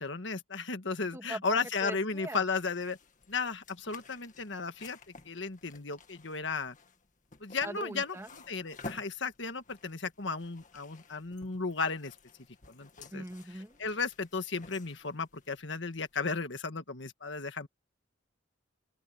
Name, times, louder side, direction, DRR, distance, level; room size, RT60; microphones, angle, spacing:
voice 1, 0.0-3.0 3.3-5.0 5.2-6.8 7.4-12.1 12.7-13.2 13.8-17.7, left 4 dB, 65° left, 1.6 m, -34 dB
voice 2, 1.1-2.4 7.6-8.3 13.1-13.8, right 1 dB, 15° right, 2.5 m, -41 dB
sound 1, 2.0-16.3, left 3 dB, 40° left, 2.0 m, -53 dB
open air
head